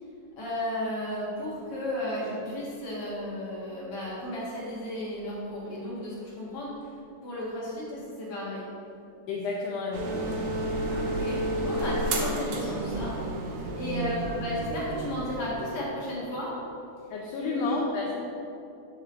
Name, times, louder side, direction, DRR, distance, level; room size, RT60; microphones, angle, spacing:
voice 1, 0.4-6.9 7.2-8.7 10.9-13.2 13.7-16.6 17.4-17.8, left 1 dB, 50° left, -6 dB, 2.4 m, -34 dB
voice 2, 9.3-10.5 13.9-14.1 17.1-18.1, left 3 dB, 80° left, -1 dB, 1.5 m, -31 dB
sound 1, 9.9-15.5, right 1 dB, 85° right, 2.4 m, -31 dB
6.4 x 4.4 x 6.1 m, 2.6 s
omnidirectional pair, 3.6 m